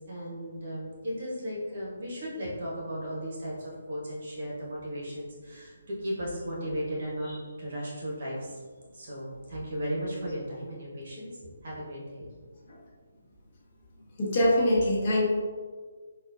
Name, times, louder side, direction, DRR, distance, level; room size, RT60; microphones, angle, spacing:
voice 1, 0.1-7.3 7.6-8.6 8.9-12.3, equal, 45° right, -5 dB, 1.1 m, -36 dB
voice 2, 14.2-15.2, left 1 dB, 35° left, -5 dB, 0.9 m, -23 dB
3.7 x 2.3 x 2.5 m, 1.5 s
figure-of-eight pair, 140°, 0 cm